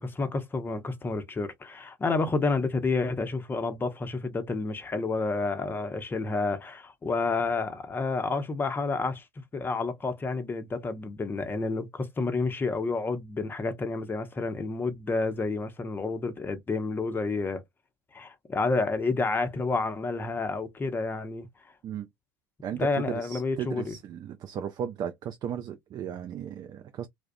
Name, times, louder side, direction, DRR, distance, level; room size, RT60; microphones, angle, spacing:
voice 1, 0.0-17.6 18.1-21.5 22.8-23.9, left 3 dB, 20° left, 0.6 m, -30 dB
voice 2, 22.6-27.1, right 9 dB, 35° right, 0.4 m, -35 dB
2.3 x 2.1 x 2.5 m
hypercardioid pair, 85°, 11 cm